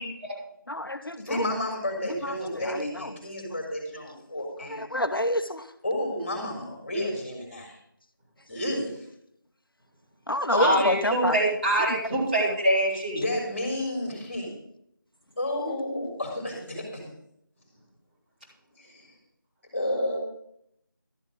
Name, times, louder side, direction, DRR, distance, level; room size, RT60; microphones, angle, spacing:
voice 1, 0.0-0.3 10.6-13.2, right 1 dB, 25° right, -8 dB, 3.9 m, -24 dB
voice 2, 0.7-1.4 2.5-2.9 4.7-5.6 10.3-11.3, left 1 dB, 85° left, 9 dB, 1.0 m, -27 dB
voice 3, 1.3-4.8 5.8-7.8 8.5-9.0 10.5-10.8 13.2-14.5 15.4-17.0 18.8-19.0 19.7-20.2, left 1 dB, 30° left, 1 dB, 3.6 m, -31 dB
12.5 x 8.2 x 5.2 m, 0.72 s
figure-of-eight pair, 170°, 11 cm